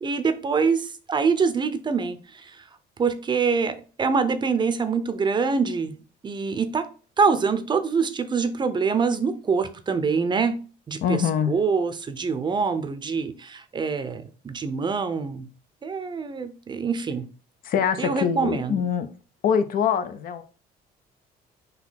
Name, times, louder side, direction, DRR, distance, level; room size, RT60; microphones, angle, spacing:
voice 1, 0.0-2.5 3.0-6.9 7.2-11.2 11.5-15.5 15.8-17.3 18.0-18.8, right 5 dB, 25° right, 0.6 m, -25 dB
voice 2, 11.0-11.5 17.6-19.1 19.4-20.4, left 7 dB, 60° left, 0.5 m, -24 dB
4.0 x 2.7 x 4.1 m
cardioid pair, 110°, 17 cm